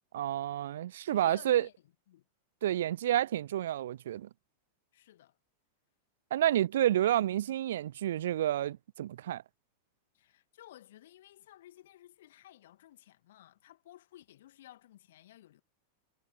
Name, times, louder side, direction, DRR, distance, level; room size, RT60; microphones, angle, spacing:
voice 1, 0.1-1.7 2.6-4.3 6.3-9.4, right 12 dB, 60° right, 0.3 m, -29 dB
voice 2, 1.0-1.7 2.1-2.2 4.9-5.4 10.1-15.6, left 13 dB, 55° left, 2.2 m, -55 dB
figure-of-eight pair, 90°, 0 cm